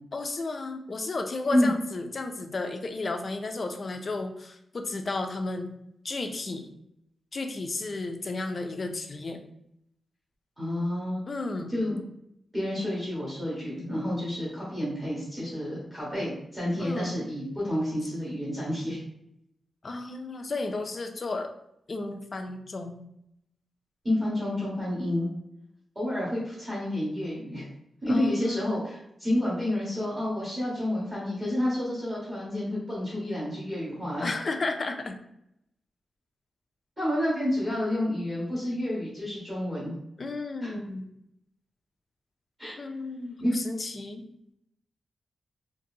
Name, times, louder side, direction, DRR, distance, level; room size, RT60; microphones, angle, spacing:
voice 1, 0.1-5.7 6.0-6.7 7.3-9.4 11.3-11.7 16.8-17.2 19.8-21.5 21.9-23.0 28.1-28.8 34.2-35.2 40.2-41.1 42.8-44.2, left 3 dB, 35° left, 5 dB, 0.4 m, -33 dB
voice 2, 10.6-11.2 11.7-12.0 12.5-19.0 24.0-25.3 25.9-27.6 28.0-34.2 37.0-39.9 40.6-40.7 42.6-42.7 43.4-43.5, left 1 dB, 15° right, -8 dB, 1.3 m, -29 dB
3.9 x 2.6 x 2.7 m, 0.78 s
wide cardioid pair, 155°, 0 cm